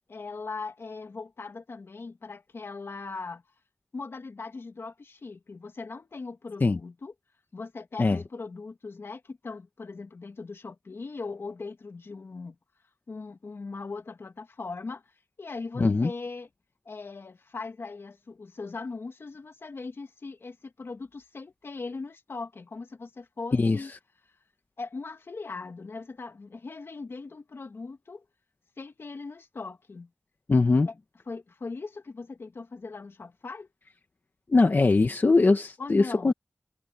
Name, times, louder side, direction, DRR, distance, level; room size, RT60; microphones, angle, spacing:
voice 1, 0.1-3.4 3.9-7.1 7.5-12.6 13.1-15.0 15.4-16.5 16.9-23.9 24.8-28.2 28.8-30.1 30.9-31.0 31.3-33.7 35.8-36.3, left 4 dB, 80° left, 2.4 m, -39 dB
voice 2, 15.8-16.1 23.5-23.8 30.5-30.9 34.5-36.3, left 3 dB, 55° left, 1.3 m, -21 dB
wide cardioid pair, 85°, 4 cm